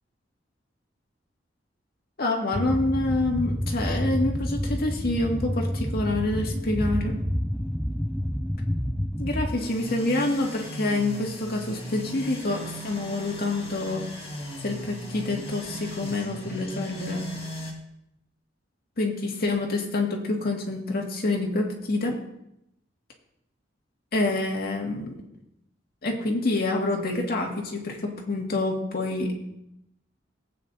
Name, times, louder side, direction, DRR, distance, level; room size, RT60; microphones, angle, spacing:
voice 1, 2.2-7.2 9.2-14.1 14.6-17.3 19.0-22.2 24.1-25.2 26.0-29.3, left 2 dB, 55° left, 0 dB, 2.0 m, -27 dB
sound 1, 2.5-9.6, equal, 5° left, 0.4 m, -29 dB
sound 2, 9.6-17.7, equal, 30° left, 2.1 m, -37 dB
17.5 x 8.6 x 2.7 m, 0.83 s
head